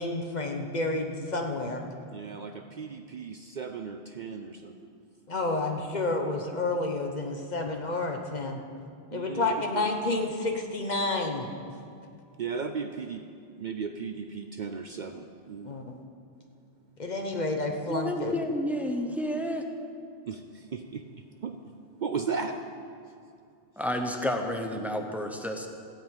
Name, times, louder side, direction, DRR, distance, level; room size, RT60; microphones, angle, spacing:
voice 1, 0.0-1.8 5.3-8.6 9.1-11.5 15.6-16.0 17.0-18.3, left 2 dB, 45° left, 3 dB, 1.1 m, -30 dB
voice 2, 2.1-4.7 9.1-9.9 12.4-13.2 13.6-15.7 20.3-21.0 21.4-21.6 22.0-22.6, right 5 dB, 55° right, 6 dB, 0.6 m, -36 dB
voice 3, 17.9-19.6 23.8-25.7, left 1 dB, ahead, 3 dB, 0.8 m, -30 dB
15.5 x 5.5 x 8.9 m, 2.4 s
omnidirectional pair, 1.1 m